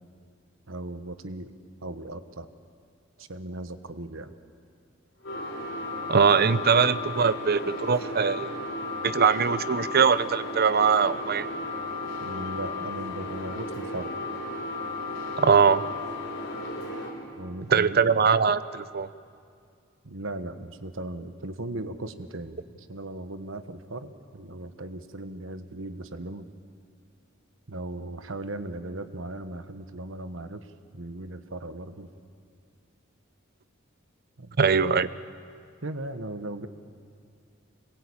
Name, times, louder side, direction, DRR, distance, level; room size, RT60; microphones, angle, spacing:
voice 1, 0.7-1.5 1.8-2.5 3.2-4.3 12.2-14.2 17.4-18.0 20.0-26.5 27.7-30.7 30.9-32.1 34.4-34.6 35.8-36.7, right 2 dB, 80° right, 10 dB, 1.3 m, -37 dB
sound 1, 5.2-17.1, left 2 dB, 65° left, 4.7 m, -34 dB
voice 2, 6.1-8.5 9.0-11.5 15.4-15.8 17.7-19.1 34.6-35.1, right 6 dB, 50° right, 14 dB, 0.7 m, -21 dB
26.0 x 21.5 x 8.7 m, 2.3 s
head